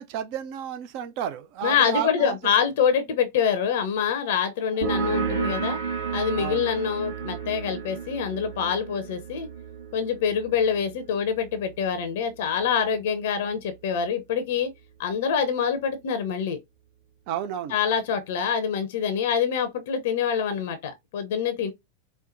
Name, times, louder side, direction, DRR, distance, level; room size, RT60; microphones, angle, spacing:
voice 1, 0.0-2.4 6.4-6.7 17.3-17.8, right 9 dB, 45° right, 0.5 m, -31 dB
voice 2, 1.6-5.8 6.1-9.5 9.9-14.7 15.0-16.6 17.7-21.7, left 7 dB, 55° left, 0.6 m, -25 dB
sound 1, 4.8-12.1, right 6 dB, 60° right, 1.0 m, -32 dB
4.4 x 2.1 x 2.6 m
figure-of-eight pair, 90°, 0 cm